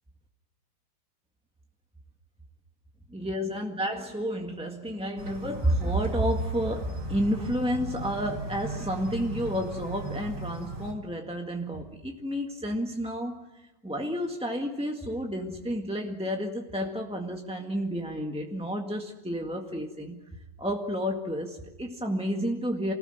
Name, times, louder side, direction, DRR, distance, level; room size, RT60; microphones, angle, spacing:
voice 1, 3.1-20.2 20.6-22.9, equal, 5° right, 1 dB, 1.1 m, -30 dB
sound 1, 5.2-10.9, right 2 dB, 45° right, 3.8 m, -38 dB
29.0 x 19.5 x 7.9 m, 1.0 s
omnidirectional pair, 3.3 m